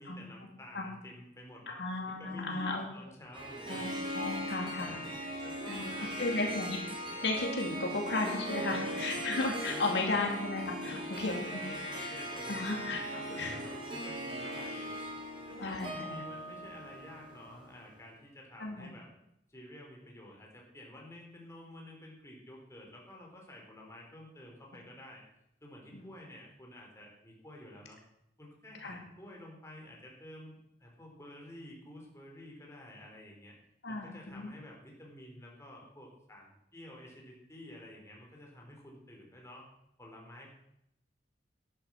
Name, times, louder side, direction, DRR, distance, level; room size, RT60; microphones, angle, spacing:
voice 1, 0.0-1.6 2.1-3.9 4.6-5.1 5.4-6.6 7.8-7.9 8.8-8.9 9.6-10.2 10.8-14.9 15.5-19.1 19.5-25.2 25.6-28.0 28.4-33.6 33.9-39.7 40.0-40.5, left 1 dB, 15° left, -1 dB, 3.9 m, -51 dB
voice 2, 1.7-2.8 3.7-3.8 4.1-5.0 5.7-5.9 6.2-6.8 7.2-11.6 11.9-12.1 12.5-13.0 13.3-13.6 15.6-16.2 18.6-18.9 25.9-26.1 28.8-29.0 33.8-34.5, left 3 dB, 80° left, 1 dB, 2.6 m, -34 dB
Harp, 3.3-17.8, right 1 dB, 30° right, 3.1 m, -39 dB
12.0 x 11.0 x 5.9 m, 0.78 s
head